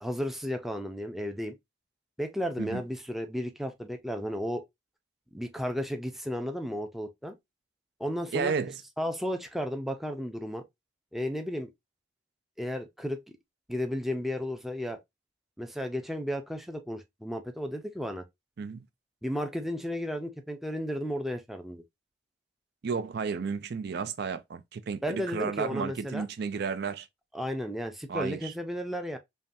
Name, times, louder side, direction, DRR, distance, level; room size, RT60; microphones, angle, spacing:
voice 1, 0.0-1.5 2.2-4.6 5.3-7.3 8.0-8.6 9.0-10.6 11.1-11.7 12.6-13.2 13.7-15.0 15.6-18.2 19.2-21.8 25.0-26.3 27.3-29.2, equal, ahead, 0.5 m, -33 dB
voice 2, 8.3-8.8 18.6-18.8 22.8-27.1 28.1-28.5, right 5 dB, 55° right, 0.4 m, -32 dB
5.3 x 2.3 x 2.6 m
head